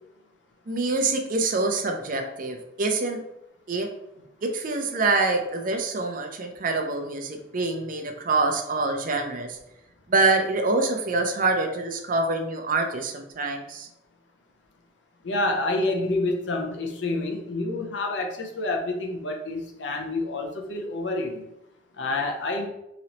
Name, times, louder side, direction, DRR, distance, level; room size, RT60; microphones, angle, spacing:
voice 1, 0.7-3.2 3.7-3.9 4.4-9.6 10.1-13.9, right 3 dB, 50° right, 5 dB, 0.5 m, -25 dB
voice 2, 15.2-21.4 22.0-22.7, left 2 dB, 75° left, 3 dB, 0.6 m, -28 dB
3.9 x 3.0 x 2.9 m, 0.86 s
head